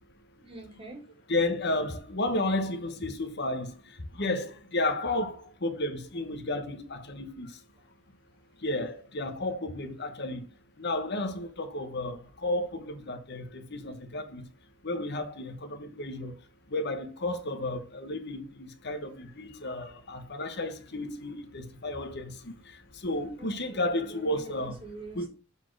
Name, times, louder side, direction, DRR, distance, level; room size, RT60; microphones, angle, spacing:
voice 1, 0.4-1.0 23.4-25.3, right 2 dB, 25° right, 1.8 m, -45 dB
voice 2, 1.3-3.8 4.1-7.5 8.6-10.4 10.8-14.4 14.8-16.3 16.7-22.5 23.0-24.8 25.1-25.3, left 2 dB, 50° left, 1.1 m, -32 dB
7.3 x 4.1 x 4.8 m
head